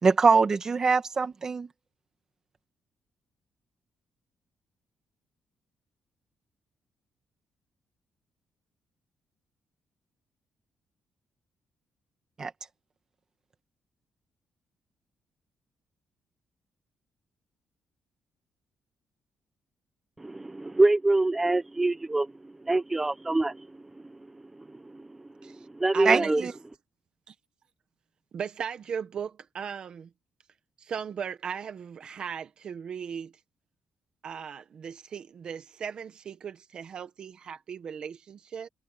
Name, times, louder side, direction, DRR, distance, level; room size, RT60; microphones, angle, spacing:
voice 1, 0.0-1.7 12.4-12.5 26.1-26.5, right 4 dB, 25° right, 2.1 m, -23 dB
voice 2, 20.2-22.3 22.6-23.7 24.7-26.4, right 2 dB, 10° right, 0.9 m, -25 dB
voice 3, 25.9-26.5 27.3-27.4 28.3-30.1 30.8-33.3 34.2-38.7, right 7 dB, 40° right, 1.3 m, -37 dB
cardioid pair, 175°, 2 cm